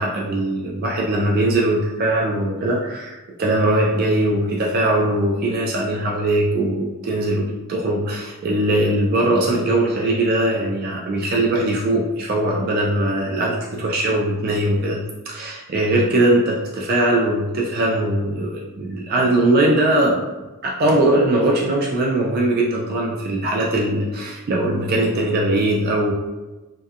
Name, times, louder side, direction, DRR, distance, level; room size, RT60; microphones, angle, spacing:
voice 1, 0.0-15.0 15.3-20.2 20.6-26.1, right 1 dB, 40° right, -2 dB, 0.3 m, -20 dB
2.7 x 2.2 x 2.3 m, 1.1 s
head